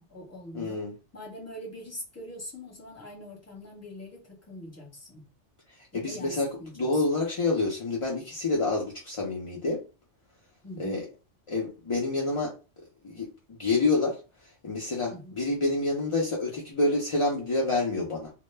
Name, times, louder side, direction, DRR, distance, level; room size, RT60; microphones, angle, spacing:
voice 1, 0.0-0.8 1.1-5.3 5.9-7.0 10.6-11.0 15.1-15.3, left 1 dB, 15° left, 0.9 m, -43 dB
voice 2, 0.5-0.9 5.9-9.8 10.8-11.0 11.5-12.6 13.0-14.2 14.6-18.3, left 2 dB, 45° left, 0.4 m, -28 dB
2.1 x 2.1 x 3.2 m
omnidirectional pair, 1.2 m